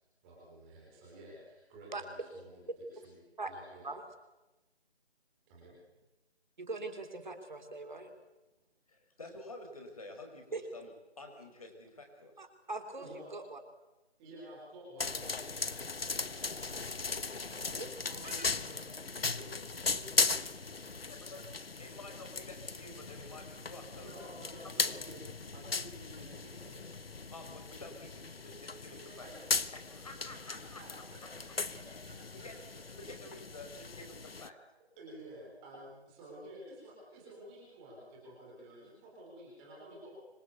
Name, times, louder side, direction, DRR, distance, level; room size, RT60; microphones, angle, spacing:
voice 1, 0.2-2.6 2.9-3.2 3.4-3.9 5.5-5.8 13.0-13.4 14.2-19.5 19.9-21.4 23.3-23.4 23.9-25.2 25.5-27.0 28.9-29.7 30.5-32.8 35.0-40.1, right 1 dB, 5° right, -4 dB, 3.7 m, -52 dB
voice 2, 6.6-8.1 10.5-10.6 12.4-13.6 17.5-17.7 18.2-18.5, right 3 dB, 45° right, 6 dB, 3.7 m, -41 dB
voice 3, 8.9-10.9 11.2-12.3 19.6-19.7 21.0-21.4 21.8-24.1 24.8-24.9 27.3-28.3 28.8-29.3 29.7-30.8 32.3-32.5 33.0-34.6, left 2 dB, 35° left, 4 dB, 5.3 m, -49 dB
sound 1, 15.0-34.5, left 4 dB, 60° left, 1.4 m, -38 dB
26.0 x 24.0 x 8.2 m, 1.0 s
figure-of-eight pair, 180°, 33 cm